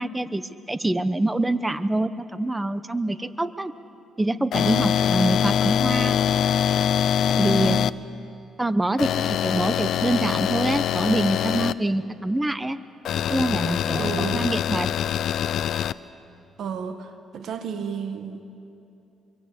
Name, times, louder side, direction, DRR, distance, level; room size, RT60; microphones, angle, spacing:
voice 1, 0.0-3.7 4.2-6.2 7.3-7.8 8.6-12.8 13.3-14.9, right 1 dB, 15° right, 13 dB, 0.9 m, -25 dB
sound 1, 4.5-7.9 9.0-11.7 13.1-15.9, left 9 dB, 70° left, 0.6 m, -23 dB
voice 2, 7.5-7.9 14.0-14.5 16.6-18.6, right 7 dB, 65° right, 8 dB, 1.6 m, -32 dB
25.0 x 23.0 x 8.5 m, 2.7 s
cardioid pair, 90°, 0 cm